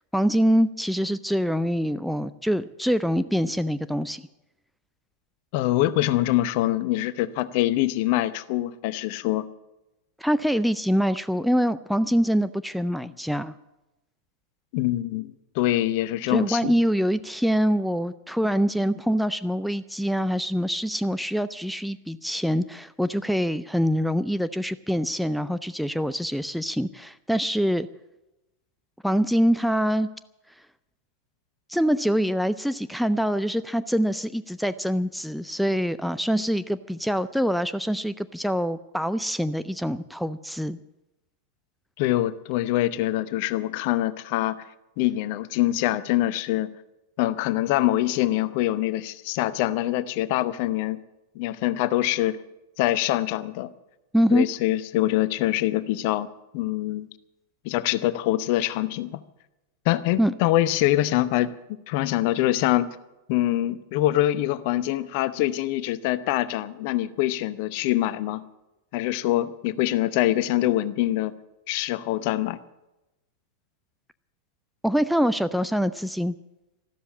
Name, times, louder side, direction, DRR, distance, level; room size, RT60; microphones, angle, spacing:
voice 1, 0.1-4.2 10.2-13.5 16.3-27.9 29.0-30.1 31.7-40.8 54.1-54.5 60.2-60.3 74.8-76.4, equal, ahead, 12 dB, 0.4 m, -24 dB
voice 2, 5.5-9.5 14.7-16.7 42.0-44.6 45.0-46.7 47.2-51.0 51.3-52.4 52.8-53.7 54.3-56.3 56.5-57.1 57.6-59.2 59.8-61.5 61.9-62.9 63.3-68.4 68.9-71.3 71.7-72.6, left 15 dB, 45° left, 16 dB, 0.8 m, -24 dB
13.5 x 12.5 x 8.6 m, 0.99 s
figure-of-eight pair, 90°, 0 cm